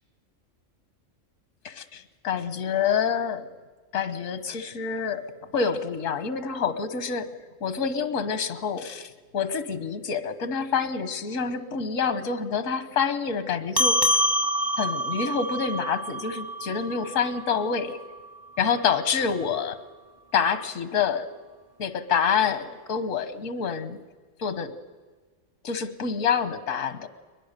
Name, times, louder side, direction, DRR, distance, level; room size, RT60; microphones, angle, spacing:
voice 1, 1.6-3.5 3.9-5.2 5.5-7.3 7.6-14.0 14.8-18.0 18.6-19.8 20.3-21.3 21.8-24.0 24.4-24.8 25.6-27.1, left 6 dB, 85° left, 12 dB, 1.4 m, -27 dB
sound 1, 13.8-18.6, equal, 25° right, 0.6 m, -27 dB
22.5 x 21.0 x 6.6 m, 1.4 s
omnidirectional pair, 1.3 m